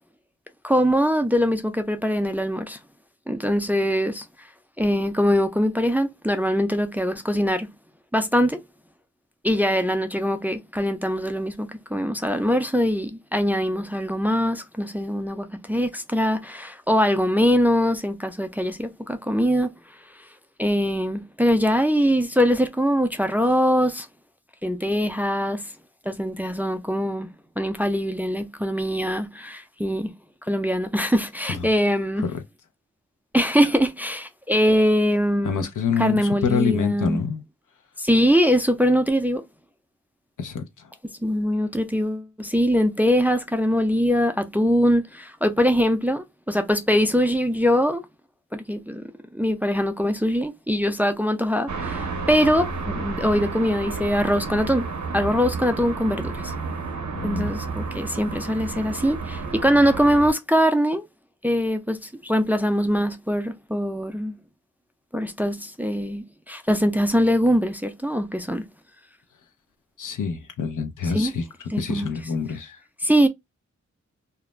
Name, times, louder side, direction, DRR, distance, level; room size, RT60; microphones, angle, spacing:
voice 1, 0.6-2.8 3.3-4.3 4.8-7.7 8.1-8.6 9.4-19.7 20.6-24.1 24.6-25.6 26.1-27.3 27.6-30.1 30.5-32.3 33.3-35.7 36.0-37.2 38.0-39.4 41.2-48.0 48.5-49.0 49.3-54.9 55.1-56.5 57.2-61.1 61.4-64.4 65.1-68.6 71.1-71.4 71.7-72.1 73.0-73.3, equal, 5° right, 0.3 m, -22 dB
voice 2, 35.4-37.4 40.4-40.9 57.1-57.5 70.0-71.5 71.8-72.8, left 6 dB, 85° left, 0.6 m, -26 dB
sound 1, 51.7-60.3, right 4 dB, 70° right, 0.6 m, -31 dB
2.4 x 2.0 x 3.0 m
wide cardioid pair, 100°, 30 cm